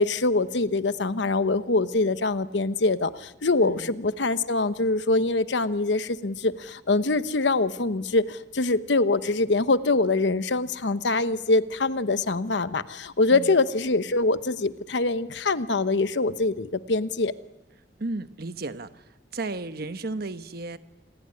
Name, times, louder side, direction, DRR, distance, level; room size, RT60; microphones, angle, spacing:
voice 1, 0.0-17.3, left 3 dB, 70° left, 13 dB, 1.0 m, -24 dB
voice 2, 18.0-19.1 19.3-20.8, right 2 dB, 60° right, 11 dB, 1.1 m, -34 dB
27.0 x 19.5 x 9.7 m, 1.0 s
head